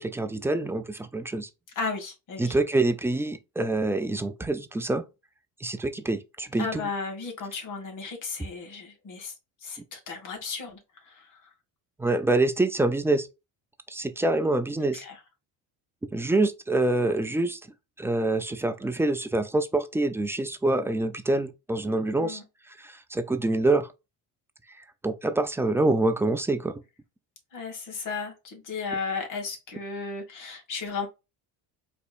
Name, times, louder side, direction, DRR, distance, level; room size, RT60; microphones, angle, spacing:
voice 1, 0.0-1.5 2.4-5.0 5.6-6.9 12.0-13.3 13.9-15.0 16.1-17.6 18.0-22.4 22.8-23.9 25.0-26.8, right 2 dB, 5° right, 0.3 m, -26 dB
voice 2, 1.8-2.6 6.6-9.3 9.6-11.5 14.9-15.2 22.2-22.4 27.5-31.1, left 4 dB, 50° left, 1.9 m, -35 dB
4.3 x 2.7 x 2.4 m
cardioid pair, 115°, 39 cm